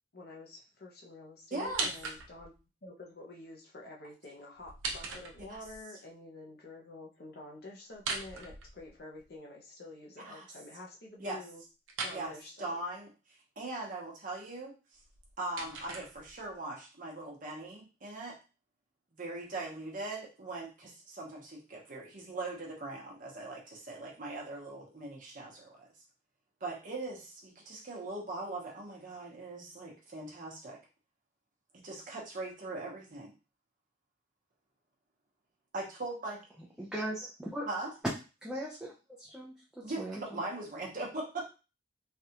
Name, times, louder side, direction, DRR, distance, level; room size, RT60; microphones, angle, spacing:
voice 1, 0.1-2.5 2.8-11.6 12.0-12.8, left 2 dB, 50° left, -1 dB, 0.7 m, -48 dB
voice 2, 1.5-1.9 5.5-5.6 10.2-10.4 11.2-11.4 12.1-12.3 12.6-15.0 15.4-18.4 19.1-25.9 26.6-30.8 31.7-33.3 35.7-36.4 37.7-37.9 39.8-41.5, right 2 dB, 40° right, -2 dB, 0.9 m, -40 dB
sound 1, 1.6-2.6 4.6-5.8 7.9-9.2 11.9-12.2 15.0-16.6, right 4 dB, 80° right, 0.7 m, -39 dB
voice 3, 36.8-37.2 37.5-37.6 38.4-38.9 39.2-40.4, right 1 dB, 5° right, -7 dB, 0.5 m, -39 dB
3.3 x 2.4 x 2.8 m, 0.31 s
head